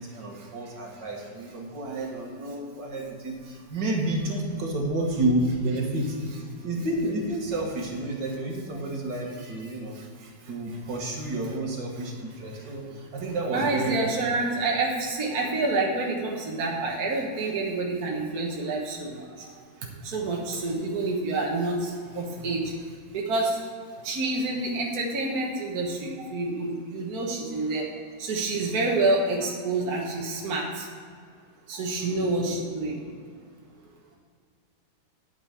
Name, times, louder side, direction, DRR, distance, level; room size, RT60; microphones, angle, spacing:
voice 1, 0.0-6.2 6.6-9.9 10.5-14.1, right 1 dB, 80° right, -1 dB, 2.4 m, -30 dB
voice 2, 9.9-10.3 12.0-12.1 12.5-12.7 13.5-22.8 23.1-23.6 24.0-27.9 28.2-30.9 31.7-33.0, right 2 dB, 60° right, -1 dB, 1.7 m, -28 dB
9.1 x 6.1 x 8.3 m, 2.1 s
omnidirectional pair, 1.9 m